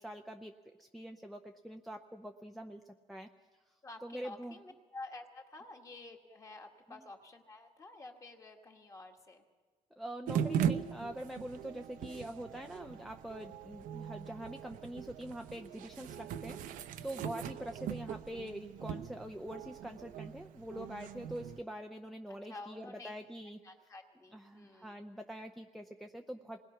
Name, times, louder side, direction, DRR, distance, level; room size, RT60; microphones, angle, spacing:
voice 1, 0.0-3.3 4.0-4.6 6.9-7.1 10.0-23.6 24.3-26.6, right 1 dB, ahead, 3 dB, 0.6 m, -44 dB
voice 2, 3.8-9.4 22.3-23.1 23.6-25.0, left 2 dB, 25° left, 3 dB, 1.8 m, -50 dB
sound 1, 10.3-21.6, right 9 dB, 85° right, 0.8 m, -40 dB
27.0 x 20.5 x 5.8 m, 1.4 s
cardioid pair, 180°, 14 cm